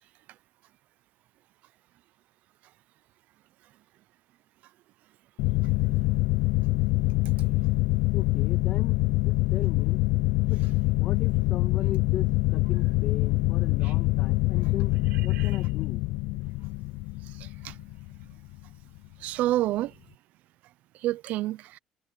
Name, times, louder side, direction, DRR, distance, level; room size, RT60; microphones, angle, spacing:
sound 1, 5.4-18.6, left 20 dB, 85° left, 0.5 m, -25 dB
voice 1, 8.1-10.0 10.5-10.6 10.9-15.0 15.2-16.0, left 11 dB, 65° left, 2.3 m, -37 dB
voice 2, 17.4-17.8 19.2-19.9 21.0-21.8, right 15 dB, 75° right, 0.8 m, -29 dB
supercardioid pair, 90°, 3 cm